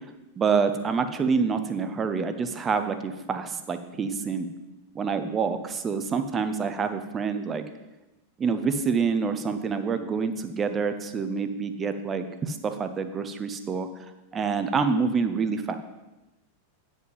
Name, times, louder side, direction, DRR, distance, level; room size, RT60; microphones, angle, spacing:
voice 1, 0.4-4.5 4.9-7.6 8.4-13.9 14.3-15.8, right 5 dB, 20° right, 9 dB, 0.8 m, -27 dB
9.5 x 5.2 x 5.4 m, 1.0 s
figure-of-eight pair, 90°, 0 cm